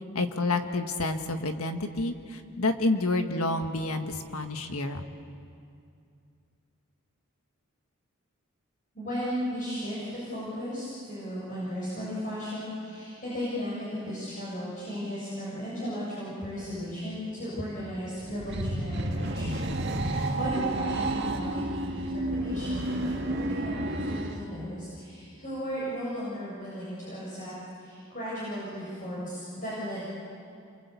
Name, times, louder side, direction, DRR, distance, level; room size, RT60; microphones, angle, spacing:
voice 1, 0.1-5.0, left 2 dB, 90° left, 6 dB, 1.7 m, -29 dB
voice 2, 8.9-27.5 27.8-30.0, equal, 35° left, -8 dB, 7.3 m, -35 dB
sound 1, 18.2-24.4, right 1 dB, 50° right, 2.0 m, -30 dB
28.5 x 23.5 x 8.4 m, 2.4 s
head